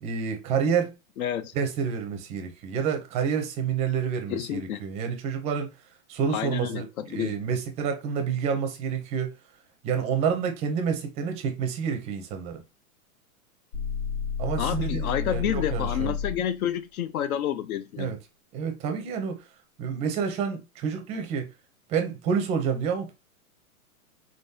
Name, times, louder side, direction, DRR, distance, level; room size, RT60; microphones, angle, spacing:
voice 1, 0.0-1.0 1.5-5.7 6.1-9.4 9.8-12.6 14.4-16.1 18.0-18.2 18.5-19.5 19.8-21.5 21.9-23.1, right 6 dB, 15° right, 0.5 m, -28 dB
voice 2, 1.2-1.5 4.3-4.8 6.3-7.3 14.6-18.1, left 10 dB, 75° left, 0.6 m, -29 dB
sound 1, 13.7-16.5, left 6 dB, 90° left, 2.0 m, -31 dB
3.7 x 3.7 x 2.7 m
hypercardioid pair, 145°, 44 cm